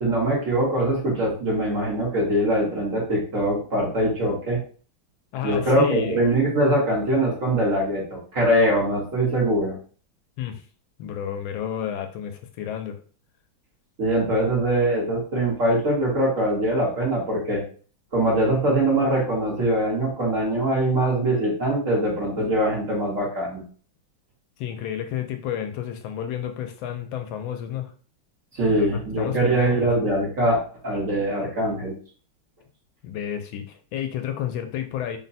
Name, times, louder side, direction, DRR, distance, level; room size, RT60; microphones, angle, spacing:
voice 1, 0.0-4.6 5.4-9.7 14.0-17.6 18.1-23.6 28.5-31.9, right 1 dB, 45° right, -3 dB, 1.3 m, -22 dB
voice 2, 5.3-6.2 10.4-10.6 11.0-13.0 24.6-27.9 28.7-29.9 33.0-35.2, left 9 dB, 80° left, 6 dB, 1.3 m, -31 dB
3.7 x 2.1 x 4.0 m, 0.41 s
omnidirectional pair, 2.2 m